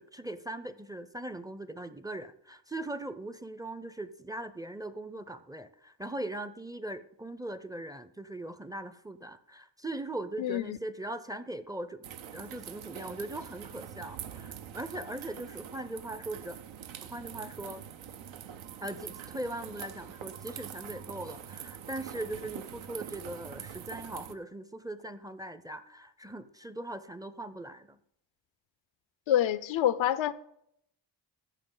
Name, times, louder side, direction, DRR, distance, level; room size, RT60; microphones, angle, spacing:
voice 1, 0.0-12.0 12.3-16.6 17.0-17.8 18.8-28.0, right 1 dB, 10° right, 0.4 m, -40 dB
voice 2, 10.4-10.8 29.3-30.3, left 11 dB, 80° left, 0.6 m, -27 dB
sound 1, 12.0-24.3, right 9 dB, 85° right, 0.7 m, -44 dB
14.5 x 5.6 x 3.8 m
cardioid pair, 75°, 46 cm